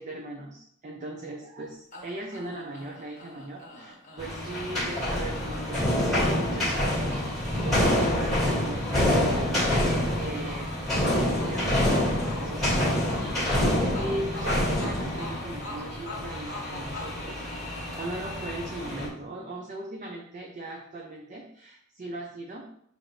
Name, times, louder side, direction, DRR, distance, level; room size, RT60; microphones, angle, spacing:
voice 1, 0.0-5.9 6.1-7.2 7.6-9.9 10.1-10.7 11.2-22.7, right 2 dB, 35° right, -1 dB, 0.5 m, -39 dB
sound 1, 1.9-18.1, left 2 dB, 35° left, 1.3 m, -44 dB
sound 2, 4.2-19.1, left 1 dB, ahead, 1.6 m, -27 dB
6.0 x 2.6 x 3.1 m, 0.68 s
head